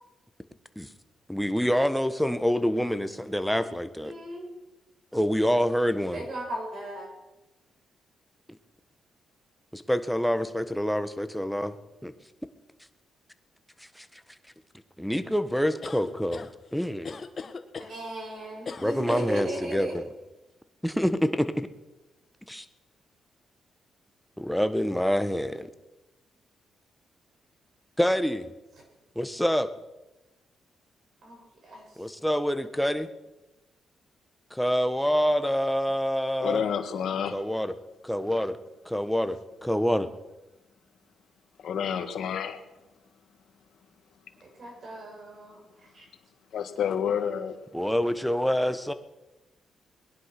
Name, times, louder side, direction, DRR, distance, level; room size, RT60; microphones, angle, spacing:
voice 1, 1.3-4.1 5.1-6.2 9.7-11.7 12.0-12.1 14.0-14.1 15.0-17.2 18.8-20.0 20.8-21.7 22.5-22.6 24.4-25.7 28.0-28.5 29.1-29.7 32.0-33.1 34.5-36.6 37.3-37.7 38.0-38.6 38.8-40.1 47.7-48.9, equal, ahead, 10 dB, 1.3 m, -26 dB
voice 2, 4.0-4.4 6.1-7.1 17.8-19.9 31.2-31.8 44.4-45.6 45.9-46.1, right 1 dB, 55° right, 0 dB, 6.9 m, -36 dB
sound 1, 15.8-16.5 17.0-17.9 18.7-19.3, left 5 dB, 45° left, 1.4 m, -38 dB
voice 3, 36.4-37.3 41.6-42.6 46.5-47.5, left 8 dB, 70° left, 8 dB, 1.7 m, -29 dB
20.0 x 11.0 x 6.1 m, 1.1 s
cardioid pair, 75°, 0 cm